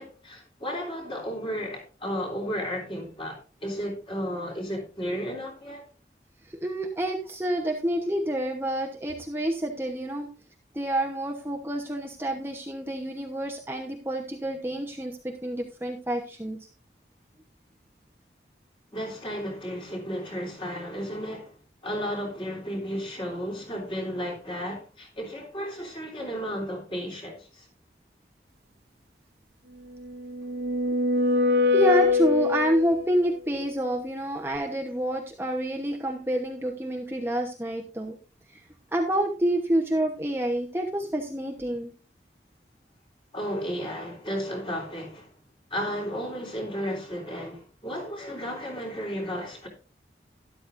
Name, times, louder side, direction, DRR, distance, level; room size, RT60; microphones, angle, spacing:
voice 1, 0.0-5.8 18.9-21.5 21.8-27.7 43.3-45.3 45.7-49.7, equal, 30° left, 3.4 m, -33 dB
voice 2, 6.5-10.3 10.7-16.7 31.7-38.2 38.9-41.9, right 1 dB, 15° right, 1.0 m, -28 dB
sound 1, 30.1-33.1, left 3 dB, 65° right, 0.7 m, -23 dB
12.5 x 11.5 x 2.6 m
head